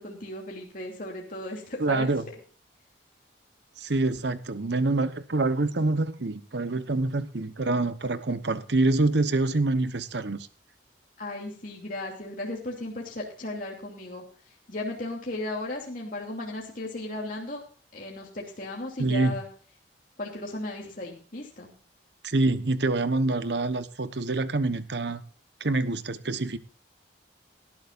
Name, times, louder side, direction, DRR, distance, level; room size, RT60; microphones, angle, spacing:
voice 1, 0.0-2.1 11.2-17.6 17.9-19.5 20.2-21.7, left 2 dB, 45° left, 2.8 m, -36 dB
voice 2, 1.8-2.3 3.8-10.5 19.0-19.3 22.2-25.2 25.6-26.6, right 2 dB, 65° right, 1.0 m, -26 dB
18.5 x 12.5 x 2.5 m
head